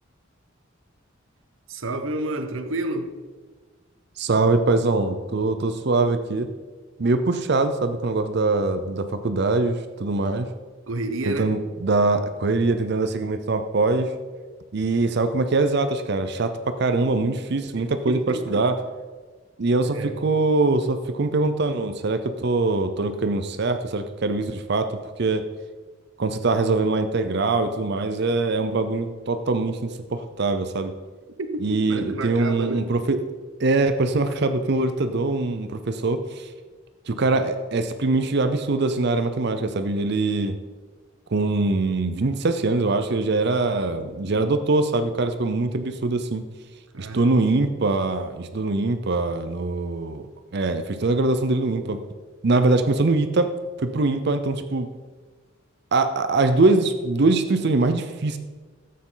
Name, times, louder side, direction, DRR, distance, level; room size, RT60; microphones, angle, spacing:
voice 1, 1.7-3.1 10.9-11.6 17.8-18.7 19.8-20.3 31.4-32.9 46.9-47.5, right 2 dB, 75° right, 9 dB, 1.0 m, -30 dB
voice 2, 4.2-6.5 7.0-10.5 11.2-14.1 14.7-18.2 18.5-18.7 19.6-25.5 26.2-30.9 31.6-33.2 33.6-36.5 37.1-40.6 41.3-46.4 47.0-52.0 52.4-54.9 55.9-58.4, right 3 dB, 55° right, 8 dB, 0.6 m, -23 dB
13.5 x 8.5 x 3.9 m, 1.4 s
head